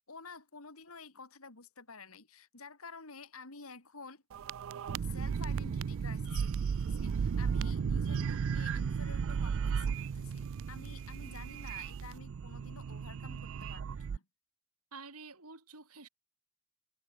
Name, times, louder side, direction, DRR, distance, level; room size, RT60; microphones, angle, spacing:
voice 1, 0.1-4.2 5.0-14.3, left 4 dB, 70° left, 3.2 m, -51 dB
sound 1, 4.3-14.2, right 6 dB, 65° right, 0.4 m, -35 dB
voice 2, 14.9-16.1, right 4 dB, 85° right, 7.0 m, -49 dB
head